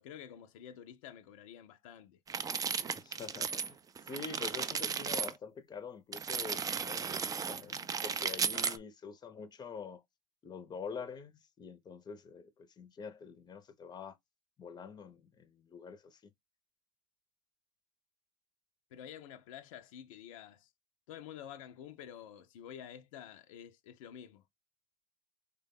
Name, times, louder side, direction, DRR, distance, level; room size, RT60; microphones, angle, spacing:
voice 1, 0.0-2.2 8.5-8.8 18.9-20.7 21.1-24.4, left 9 dB, 80° left, 0.5 m, -49 dB
sound 1, 2.3-3.7 4.0-5.3 6.1-8.8, right 6 dB, 20° right, 0.3 m, -35 dB
voice 2, 2.9-10.0 10.4-14.2 14.6-16.3, left 5 dB, 25° left, 0.6 m, -46 dB
3.4 x 2.2 x 3.5 m
hypercardioid pair, 85°, 17 cm